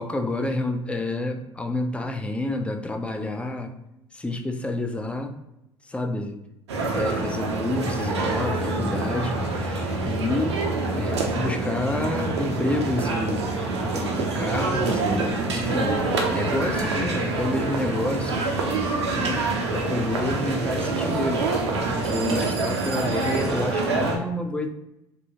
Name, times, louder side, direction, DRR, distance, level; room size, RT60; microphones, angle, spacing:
voice 1, 0.0-3.8 4.1-5.3 5.8-6.4 6.9-10.6 11.0-13.5 13.9-16.0 16.3-18.5 19.1-19.4 19.7-21.5 21.9-24.7, left 2 dB, 10° left, 5 dB, 0.3 m, -29 dB
sound 1, 6.7-24.2, right 3 dB, 80° right, 0.4 m, -26 dB
2.7 x 2.1 x 2.7 m, 0.89 s
figure-of-eight pair, 60°, 14 cm